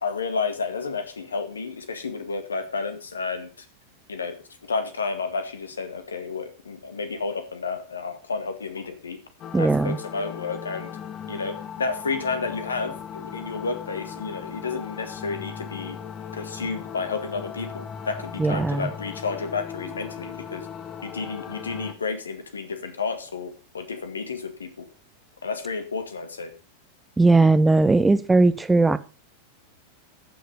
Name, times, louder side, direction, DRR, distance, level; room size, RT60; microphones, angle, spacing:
voice 1, 0.0-3.5 4.1-4.4 4.6-9.2 9.6-10.9 11.3-16.0 16.3-20.7 21.0-24.9 25.4-26.5, left 4 dB, 70° left, 2.0 m, -31 dB
sound 1, 9.4-21.9, left 7 dB, 30° left, 1.2 m, -38 dB
voice 2, 9.5-10.0 18.4-18.9 27.2-29.0, right 3 dB, 10° right, 0.9 m, -18 dB
14.5 x 6.5 x 6.6 m
figure-of-eight pair, 90°, 0 cm